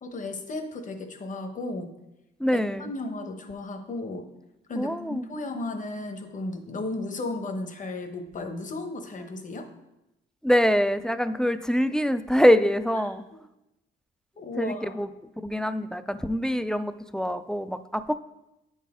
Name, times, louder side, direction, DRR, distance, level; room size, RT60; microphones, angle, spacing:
voice 1, 0.0-1.9 2.8-4.3 4.7-9.7 12.9-13.0 13.3-13.4 14.4-15.0, left 2 dB, 40° left, 6 dB, 1.0 m, -34 dB
voice 2, 2.4-2.9 4.7-5.2 10.4-13.2 14.6-15.1 15.4-18.1, equal, 5° left, 11 dB, 0.3 m, -24 dB
8.3 x 4.2 x 3.6 m, 0.92 s
cardioid pair, 90°, 20 cm